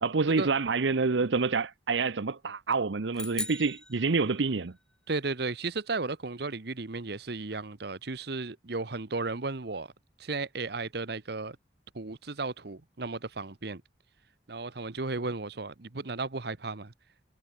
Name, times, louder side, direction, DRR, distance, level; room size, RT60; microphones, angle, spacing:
voice 1, 0.0-4.7, right 4 dB, 75° right, 0.8 m, -27 dB
sound 1, 3.1-4.8, left 1 dB, 5° left, 1.2 m, -39 dB
voice 2, 5.1-9.9 10.2-11.6 11.9-13.8 14.5-16.9, right 3 dB, 60° right, 1.1 m, -34 dB
head